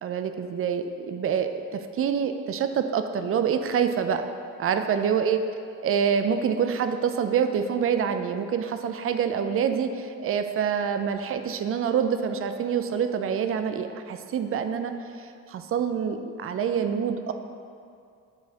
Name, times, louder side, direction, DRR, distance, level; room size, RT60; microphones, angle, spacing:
voice 1, 0.0-4.3 4.6-5.4 5.8-17.3, right 7 dB, 40° right, 8 dB, 0.4 m, -26 dB
8.7 x 3.8 x 2.9 m, 2.4 s
supercardioid pair, 70°, 37 cm